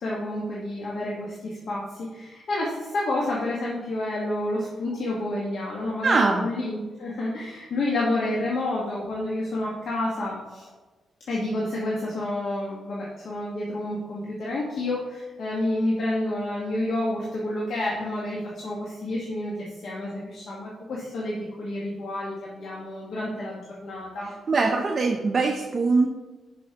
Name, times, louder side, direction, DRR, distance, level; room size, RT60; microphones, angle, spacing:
voice 1, 0.0-10.7 11.3-24.3, left 1 dB, 65° left, -5 dB, 1.5 m, -29 dB
voice 2, 6.0-6.5 24.5-26.1, right 4 dB, 40° right, 2 dB, 0.7 m, -22 dB
11.5 x 5.2 x 2.9 m, 1.2 s
cardioid pair, 105°, 0 cm